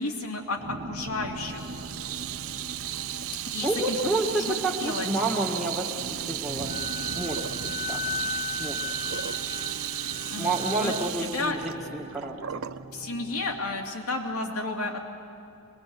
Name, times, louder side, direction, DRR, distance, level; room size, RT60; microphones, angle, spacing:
voice 1, 0.0-1.7 3.5-4.0 4.4-4.5 4.8-5.1 10.3-10.5 10.8-11.6 12.9-15.0, left 2 dB, 90° left, 2 dB, 2.6 m, -32 dB
sound 1, 0.6-13.9, right 2 dB, 55° right, 0.9 m, -41 dB
Water tap faucet / Sink (filling or washing), 1.5-12.8, right 12 dB, 70° right, 0.5 m, -34 dB
voice 2, 3.6-6.8 7.2-8.0 8.6-8.8 10.4-12.6, right 2 dB, ahead, -1 dB, 1.8 m, -30 dB
Wind instrument woodwind instrument, 6.7-11.1, left 5 dB, 40° left, 1.1 m, -36 dB
25.5 x 21.0 x 7.8 m, 2.5 s
head